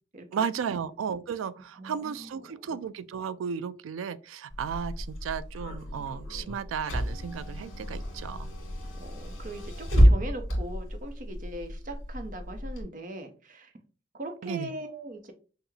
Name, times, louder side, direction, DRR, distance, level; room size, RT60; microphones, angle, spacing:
voice 1, 0.3-8.5 14.4-14.7, right 7 dB, 85° right, 0.3 m, -34 dB
voice 2, 1.8-2.8 9.0-13.7 14.1-15.3, right 1 dB, 40° right, 0.6 m, -40 dB
Car / Engine, 4.5-12.8, equal, 75° left, 1.7 m, -29 dB
5.6 x 2.0 x 3.1 m
head